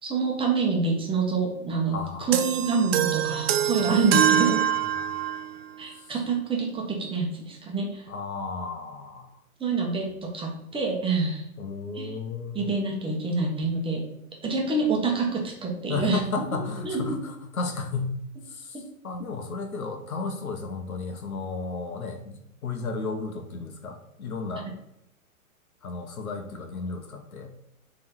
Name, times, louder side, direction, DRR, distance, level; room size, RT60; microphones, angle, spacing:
voice 1, 0.0-4.6 5.8-8.1 9.6-11.4 11.9-12.1 12.5-14.0 14.4-16.2 16.5-16.6 16.8-17.2, right 4 dB, 10° right, -1 dB, 1.4 m, -27 dB
voice 2, 1.9-2.4 3.7-3.9 4.9-5.2 8.1-9.3 11.6-12.7 15.9-18.1 18.5-24.7 25.8-27.5, left 4 dB, 70° left, 4 dB, 1.5 m, -33 dB
sound 1, 2.3-5.5, right 10 dB, 45° right, 0.6 m, -24 dB
7.2 x 3.9 x 4.6 m, 0.80 s
hypercardioid pair, 120°, 44 cm